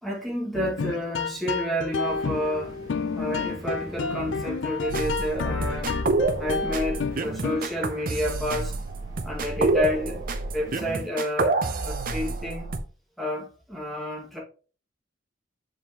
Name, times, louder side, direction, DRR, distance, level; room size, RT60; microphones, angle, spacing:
voice 1, 0.0-2.8 3.2-6.0 6.4-8.8 9.2-10.2 10.5-11.6 11.8-12.7 13.2-14.4, left 1 dB, ahead, 1.9 m, -30 dB
sound 1, 0.5-7.9, left 4 dB, 75° left, 0.5 m, -30 dB
sound 2, 2.0-11.0, equal, 20° right, 2.1 m, -46 dB
sound 3, 4.9-12.8, right 3 dB, 50° right, 0.7 m, -28 dB
7.4 x 4.8 x 3.0 m
head